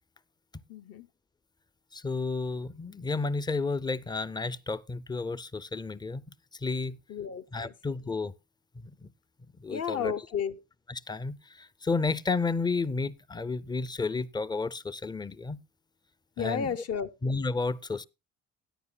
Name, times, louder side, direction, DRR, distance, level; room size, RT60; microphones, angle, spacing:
voice 1, 0.7-1.1 7.1-7.7 9.7-10.6 16.4-17.1, left 7 dB, 55° left, 0.8 m, -32 dB
voice 2, 1.9-6.2 6.6-7.0 7.5-8.3 9.0-9.1 9.6-10.1 10.9-15.6 16.4-16.7 17.2-18.0, left 3 dB, 15° left, 0.4 m, -31 dB
17.0 x 9.6 x 2.2 m
cardioid pair, 90°, 30 cm